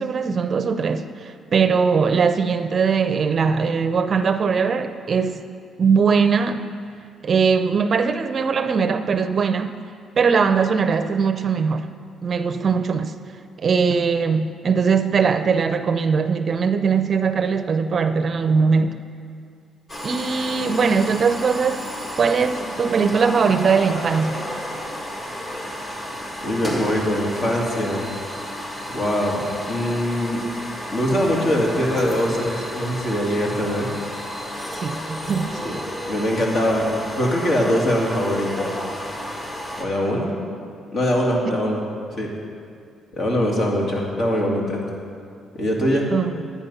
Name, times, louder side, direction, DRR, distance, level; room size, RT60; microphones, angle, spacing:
voice 1, 0.0-5.5 5.8-6.6 7.2-9.7 10.2-11.9 12.2-13.1 13.6-19.0 20.0-21.9 22.2-24.4 34.8-35.6 41.5-41.6 46.1-46.5, right 5 dB, 45° right, 10 dB, 0.5 m, -20 dB
sound 1, 19.9-39.8, equal, 25° left, 1.8 m, -32 dB
voice 2, 26.4-28.1 28.9-30.4 30.9-33.9 35.6-35.8 36.1-36.9 37.2-38.7 39.8-40.3 40.9-41.8 42.1-42.3 43.1-44.8 45.5-46.1, equal, 55° left, -2 dB, 2.5 m, -22 dB
10.5 x 9.3 x 5.6 m, 2.3 s
cardioid pair, 90°, 0 cm